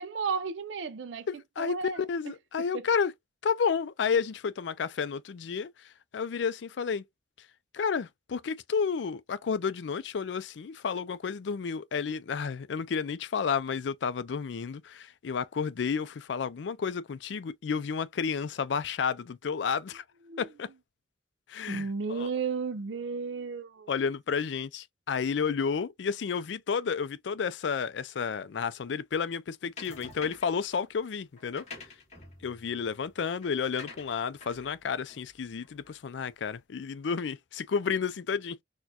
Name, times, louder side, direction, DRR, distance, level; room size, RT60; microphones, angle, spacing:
voice 1, 0.0-1.3 1.6-2.1 2.7-2.9 20.3-20.5 21.7-23.9, right 5 dB, 85° right, 0.5 m, -33 dB
voice 2, 1.3-3.1 3.4-7.0 7.7-20.0 20.4-20.7 21.5-22.3 23.9-31.7 32.4-38.6, left 6 dB, 75° left, 0.4 m, -31 dB
sound 1, 29.8-30.6 31.4-36.1, left 3 dB, 40° left, 1.7 m, -48 dB
4.3 x 2.2 x 2.8 m
head